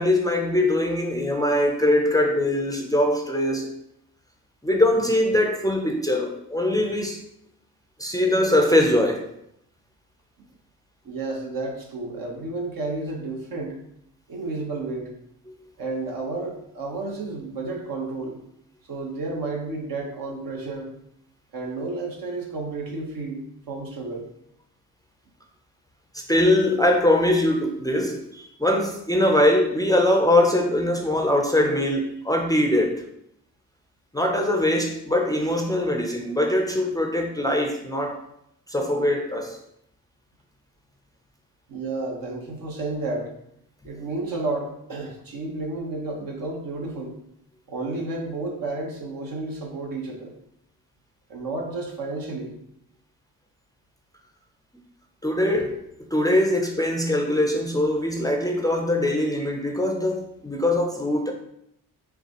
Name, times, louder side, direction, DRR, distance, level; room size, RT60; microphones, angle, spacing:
voice 1, 0.0-3.7 4.6-7.2 8.0-9.3 15.5-15.6 26.1-33.0 34.1-38.2 38.7-39.6 55.2-61.3, left 1 dB, 10° left, 0.5 m, -22 dB
voice 2, 11.0-13.8 14.3-15.1 15.8-18.4 18.9-20.9 21.5-23.4 23.7-24.3 41.7-43.3 43.8-47.1 47.7-50.3 51.3-52.6, right 3 dB, 65° right, 1.2 m, -31 dB
5.6 x 2.4 x 2.9 m
cardioid pair, 75°, 37 cm